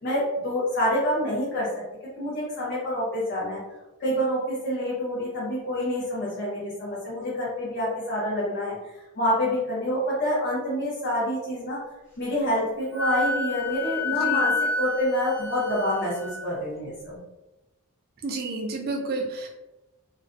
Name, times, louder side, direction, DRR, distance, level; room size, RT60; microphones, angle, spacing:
voice 1, 0.0-1.8 2.2-3.6 4.0-8.8 9.2-11.8 12.2-17.2, equal, 50° left, -7 dB, 0.7 m, -27 dB
Wind instrument woodwind instrument, 12.9-16.4, left 3 dB, 10° left, 0.8 m, -28 dB
voice 2, 14.0-14.5 18.2-19.5, right 3 dB, 45° right, 0 dB, 0.3 m, -31 dB
2.4 x 2.1 x 2.5 m, 0.99 s
head